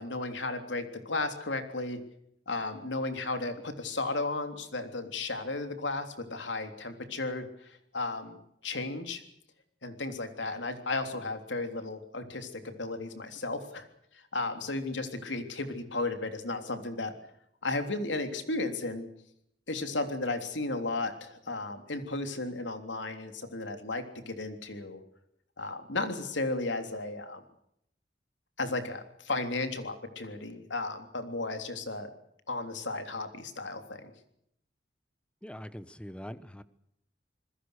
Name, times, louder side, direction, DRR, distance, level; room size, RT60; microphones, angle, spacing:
voice 1, 0.0-2.0 2.5-8.4 8.6-9.2 9.8-13.9 14.1-17.1 17.6-19.1 19.7-25.0 25.6-27.4 28.6-32.1 32.5-34.1, left 2 dB, 85° left, 7 dB, 3.4 m, -34 dB
voice 2, 35.4-36.6, equal, 5° left, 14 dB, 1.1 m, -43 dB
27.0 x 21.0 x 6.6 m, 0.73 s
head